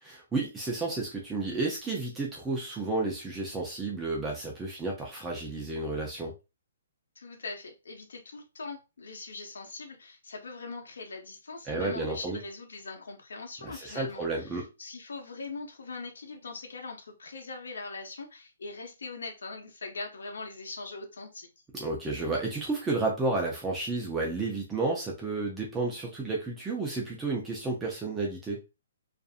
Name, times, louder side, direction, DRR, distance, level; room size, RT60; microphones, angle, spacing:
voice 1, 0.0-6.3 11.7-12.4 13.6-14.6 21.7-28.6, right 3 dB, 10° right, 0.4 m, -31 dB
voice 2, 7.2-21.5, left 3 dB, 80° left, 0.7 m, -41 dB
2.5 x 2.5 x 2.4 m
hypercardioid pair, 170°, 0 cm